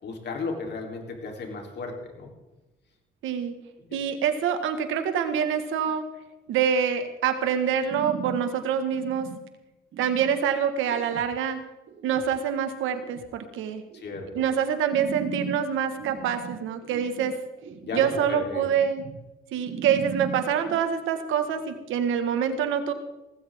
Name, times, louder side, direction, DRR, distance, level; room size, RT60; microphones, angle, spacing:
voice 1, 0.0-2.3 3.9-4.0 13.9-14.5 17.8-18.6, left 4 dB, 60° left, 2 dB, 3.7 m, -35 dB
voice 2, 3.2-3.5 3.9-6.0 6.5-9.3 10.0-11.6 12.0-13.8 14.4-17.4 17.9-19.0 19.5-22.9, right 8 dB, 90° right, 8 dB, 1.8 m, -26 dB
sound 1, 7.9-8.4 8.9-9.4 9.9-10.4 10.9-11.3 11.9-12.3 12.9-13.3 13.9-14.3 14.9-15.6 15.9-18.2 18.6-19.2 19.6-20.8, right 6 dB, 70° right, 2.4 m, -38 dB
18.5 x 16.0 x 3.8 m, 1.0 s
cardioid pair, 90°, 20 cm